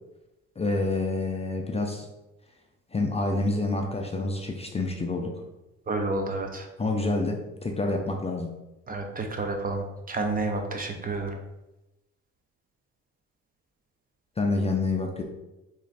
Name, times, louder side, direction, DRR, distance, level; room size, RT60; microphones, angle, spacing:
voice 1, 0.6-2.1 2.9-5.4 6.8-8.6 14.4-15.2, left 2 dB, 20° left, 2 dB, 0.4 m, -28 dB
voice 2, 5.9-6.7 8.9-11.4, right 2 dB, 30° right, 4 dB, 0.6 m, -30 dB
3.1 x 2.6 x 4.0 m, 0.99 s
cardioid pair, 90°, 30 cm